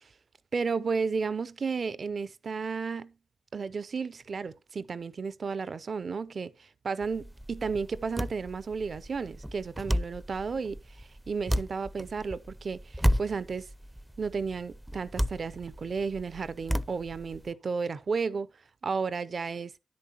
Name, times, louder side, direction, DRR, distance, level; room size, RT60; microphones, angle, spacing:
voice 1, 0.5-3.1 3.5-13.7 14.2-18.5 18.8-19.7, right 5 dB, 55° right, 0.6 m, -33 dB
sound 1, 7.0-17.5, equal, 5° right, 0.5 m, -33 dB
10.0 x 8.6 x 2.9 m
supercardioid pair, 45°, 0 cm